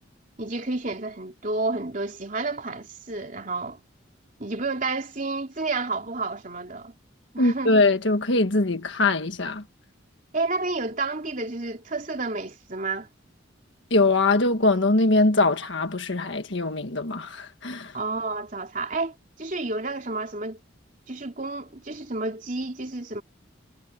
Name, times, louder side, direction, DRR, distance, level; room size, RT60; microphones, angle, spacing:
voice 1, 0.4-3.8 4.4-6.9 7.3-7.7 10.3-13.1 17.9-20.6 21.1-23.2, right 3 dB, 40° right, 3.2 m, -30 dB
voice 2, 7.4-9.6 13.9-17.9, left 2 dB, 70° left, 1.6 m, -22 dB
head